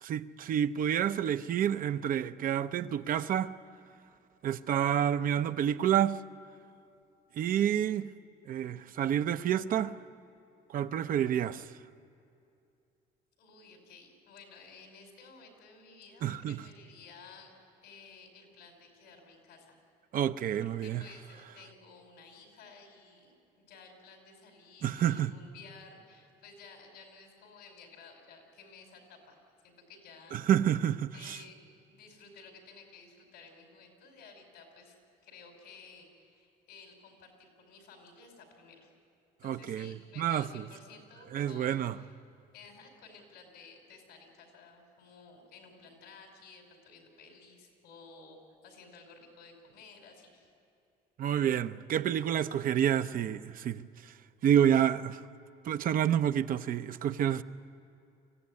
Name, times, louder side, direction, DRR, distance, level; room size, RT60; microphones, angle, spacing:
voice 1, 0.0-3.5 4.4-6.2 7.4-8.1 8.5-9.9 10.7-11.6 16.2-16.6 20.1-21.0 24.8-25.3 30.3-31.4 39.4-40.6 41.3-42.0 51.2-53.8 54.4-55.2 55.6-57.4, right 10 dB, 55° right, 0.7 m, -29 dB
voice 2, 13.4-17.5 17.8-19.8 20.6-29.4 29.6-30.4 31.1-31.6 31.9-35.0 35.2-38.9 39.4-42.2 42.5-50.5, left 4 dB, 85° left, 5.3 m, -54 dB
24.5 x 15.5 x 9.7 m
cardioid pair, 110°, 17 cm